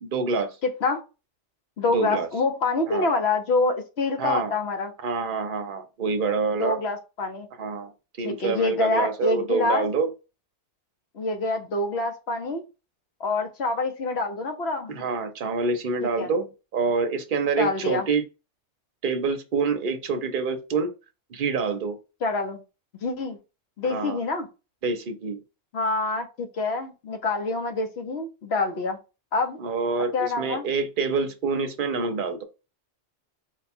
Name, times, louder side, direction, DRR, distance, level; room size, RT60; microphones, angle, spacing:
voice 1, 0.0-0.6 1.9-2.3 2.9-3.1 4.2-4.5 5.0-6.8 7.6-7.9 8.2-10.1 14.9-16.5 16.7-18.2 19.0-20.9 21.3-22.0 23.9-24.2 24.8-25.4 29.6-32.4, right 4 dB, 50° right, 0.8 m, -26 dB
voice 2, 0.6-1.0 1.8-4.9 6.6-7.5 8.2-9.9 11.1-12.6 13.2-15.0 16.0-16.3 17.6-18.1 22.2-22.6 23.0-23.4 23.8-24.5 25.7-29.0 29.3-29.6 30.1-30.6, left 3 dB, 65° left, 1.1 m, -26 dB
4.6 x 2.3 x 4.3 m
omnidirectional pair, 1.2 m